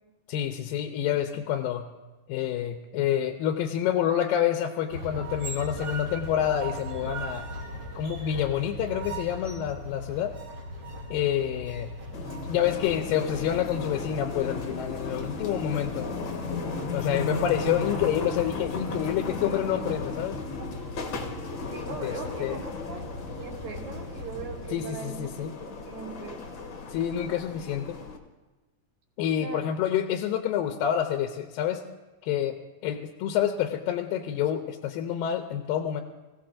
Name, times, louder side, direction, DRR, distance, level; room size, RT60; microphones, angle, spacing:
voice 1, 0.3-1.8 2.3-7.5 8.0-10.3 11.1-11.9 12.4-16.1 16.9-20.4 22.0-22.1 22.4-22.6 24.7-25.5 26.9-28.0 29.2-31.8 32.2-36.0, left 10 dB, 85° left, 6 dB, 2.3 m, -28 dB
sound 1, 4.9-24.8, equal, 40° right, 1.7 m, -39 dB
sound 2, 12.1-28.2, left 3 dB, 55° left, 1.3 m, -36 dB
voice 2, 21.7-23.0 23.4-25.3 25.7-26.4 29.4-29.6, right 5 dB, 75° right, -4 dB, 4.0 m, -40 dB
23.5 x 16.0 x 2.5 m, 1.2 s
omnidirectional pair, 4.1 m